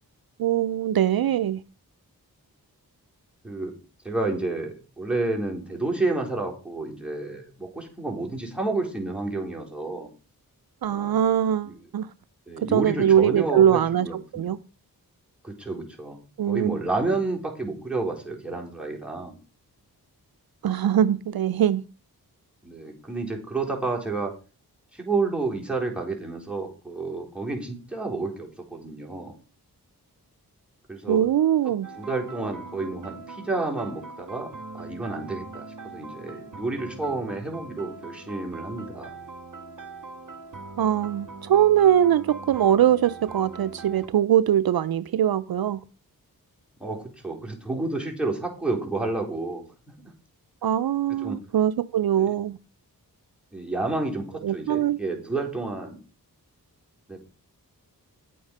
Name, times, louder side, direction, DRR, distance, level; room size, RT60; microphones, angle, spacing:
voice 1, 0.4-1.6 10.8-12.1 12.6-14.1 14.3-14.6 16.4-16.8 20.6-21.8 31.1-31.9 40.8-45.8 50.6-52.6 54.4-55.0, right 10 dB, 70° right, 0.5 m, -22 dB
voice 2, 4.0-10.1 10.9-11.2 11.6-11.7 12.5-14.5 15.4-16.2 16.5-19.3 22.6-24.3 24.9-29.4 30.9-31.3 32.0-34.5 34.7-39.1 46.8-49.6 51.2-51.4 52.2-52.3 53.5-56.0 57.1-57.2, right 3 dB, 5° right, 4.3 m, -30 dB
sound 1, 31.8-44.1, right 3 dB, 55° right, 1.7 m, -41 dB
9.9 x 8.6 x 5.4 m
cardioid pair, 55°, 38 cm